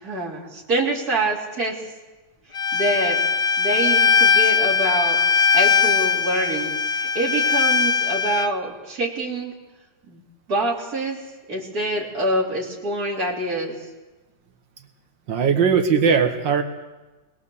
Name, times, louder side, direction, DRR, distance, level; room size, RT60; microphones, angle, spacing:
voice 1, 0.0-1.8 2.7-3.2 3.6-9.5 10.1-10.2 10.5-11.2 11.5-13.7, right 2 dB, 55° right, -5 dB, 3.9 m, -26 dB
Bowed string instrument, 2.5-8.5, left 6 dB, 40° left, 0.4 m, -20 dB
voice 2, 15.3-16.6, right 6 dB, 85° right, 5 dB, 2.2 m, -19 dB
21.5 x 21.5 x 7.1 m, 1.2 s
omnidirectional pair, 2.0 m